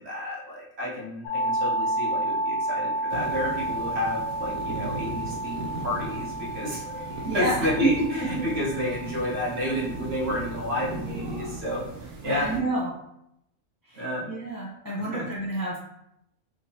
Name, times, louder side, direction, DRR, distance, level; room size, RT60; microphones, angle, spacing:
voice 1, 0.0-12.5 13.9-14.3 14.9-15.3, left 1 dB, 55° right, -4 dB, 1.0 m, -31 dB
sound 1, 1.2-11.0, right 1 dB, 65° left, 1.0 m, -31 dB
sound 2, 3.1-12.6, right 2 dB, 85° right, 1.2 m, -37 dB
voice 2, 7.2-7.5 8.2-8.5 12.2-12.9 13.9-15.8, right 1 dB, 25° left, -7 dB, 0.5 m, -30 dB
3.6 x 2.9 x 2.7 m, 0.81 s
omnidirectional pair, 1.5 m